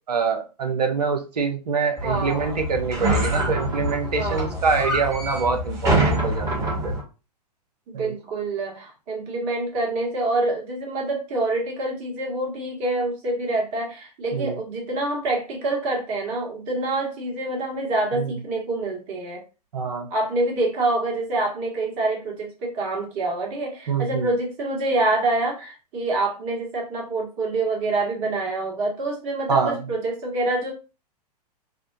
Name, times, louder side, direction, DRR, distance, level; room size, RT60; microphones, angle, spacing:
voice 1, 0.1-6.9 7.9-8.1 14.3-14.6 18.1-18.3 19.7-20.1 23.9-24.3 29.5-29.8, right 5 dB, 70° right, 4 dB, 0.8 m, -25 dB
sound 1, 2.0-7.0, right 1 dB, 15° right, 1.2 m, -25 dB
voice 2, 2.0-2.6 4.2-4.6 7.9-19.4 20.1-30.7, right 2 dB, 40° right, -1 dB, 1.4 m, -26 dB
3.5 x 2.1 x 2.7 m, 0.31 s
figure-of-eight pair, 100°, 21 cm